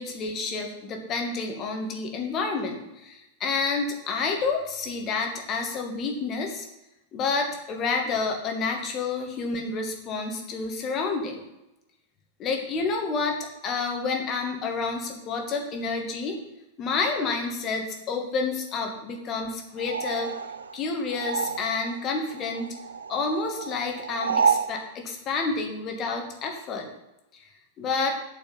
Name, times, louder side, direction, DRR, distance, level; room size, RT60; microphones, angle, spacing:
voice 1, 0.0-6.7 7.1-11.4 12.4-13.4 13.6-16.4 16.8-20.3 20.7-22.7 23.1-26.9 27.8-28.2, left 4 dB, 30° left, 2 dB, 2.3 m, -29 dB
sound 1, 19.8-22.0 22.3-24.8, right 6 dB, 75° right, 0.6 m, -29 dB
8.9 x 7.0 x 7.1 m, 0.93 s
figure-of-eight pair, 90°, 0 cm